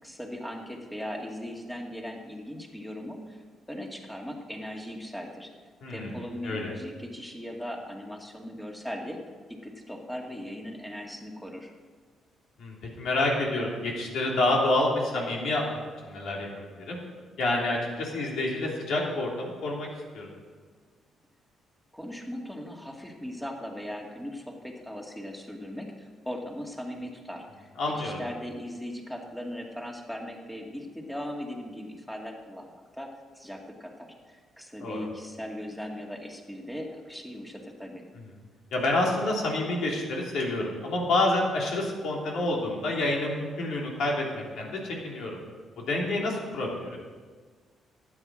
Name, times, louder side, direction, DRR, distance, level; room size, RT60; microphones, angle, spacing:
voice 1, 0.0-3.4 3.7-5.5 5.9-9.2 9.5-11.7 21.9-38.0, equal, 5° left, 1 dB, 2.1 m, -39 dB
voice 2, 5.8-6.1 6.4-6.7 12.6-16.5 16.8-17.0 17.4-19.9 20.1-20.3 27.8-28.2 34.8-35.1 38.7-45.4 45.9-47.0, left 2 dB, 75° left, -2 dB, 3.2 m, -28 dB
13.0 x 9.3 x 6.3 m, 1.5 s
cardioid pair, 90°, 0 cm